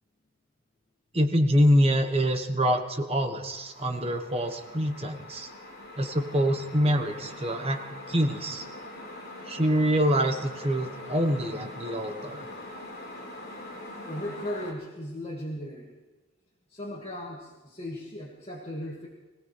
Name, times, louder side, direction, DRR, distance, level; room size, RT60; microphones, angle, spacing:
voice 1, 1.1-5.5 6.0-7.8 8.1-8.6 9.4-12.5, equal, 30° right, 5 dB, 1.3 m, -25 dB
sound 1, 3.5-14.7, left 1 dB, 45° left, 4.2 m, -43 dB
voice 2, 14.0-15.9 16.7-19.1, left 1 dB, 30° left, -4 dB, 2.2 m, -37 dB
25.5 x 17.0 x 3.4 m, 1.2 s
head